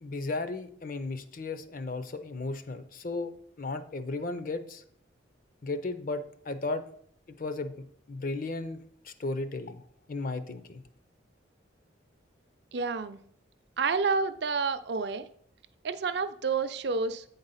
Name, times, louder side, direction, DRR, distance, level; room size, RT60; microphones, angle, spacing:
voice 1, 0.0-3.3 3.6-4.8 5.6-6.8 7.3-9.8 10.1-10.8, left 3 dB, 45° left, 11 dB, 0.5 m, -35 dB
voice 2, 12.7-13.2 13.8-15.3 15.8-17.2, right 4 dB, 55° right, 11 dB, 0.5 m, -29 dB
8.8 x 4.0 x 5.5 m, 0.64 s
head